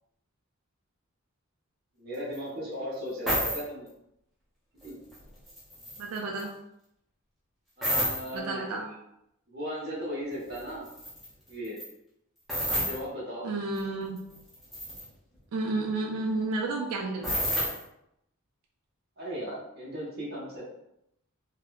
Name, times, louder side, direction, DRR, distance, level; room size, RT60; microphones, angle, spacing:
voice 1, 2.0-3.9 4.8-5.0 7.8-9.0 9.5-10.9 11.5-11.8 12.8-13.5 19.2-20.6, equal, 45° right, -6 dB, 0.9 m, -36 dB
sound 1, 2.3-2.4 3.3-3.6 4.8-5.2 5.5-6.4 7.8-8.3 10.6-10.7 10.9-11.3 11.6-11.9 12.5-13.0 13.8-13.9 14.2-15.0 17.2-17.8, equal, ahead, 0.6 m, -29 dB
voice 2, 6.0-6.5 8.3-8.8 13.4-14.2 15.5-17.3, right 3 dB, 90° right, 0 dB, 0.3 m, -31 dB
3.0 x 2.0 x 2.3 m, 0.79 s
head